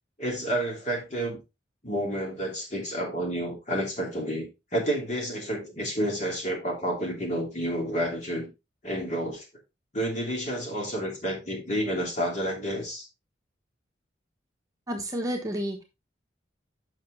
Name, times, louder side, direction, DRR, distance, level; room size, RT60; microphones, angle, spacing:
voice 1, 0.2-1.4 1.8-8.5 8.8-9.4 9.9-13.1, right 1 dB, 40° left, 2.6 m, -30 dB
voice 2, 14.9-15.8, equal, 20° right, 1.2 m, -30 dB
7.6 x 5.9 x 3.8 m
head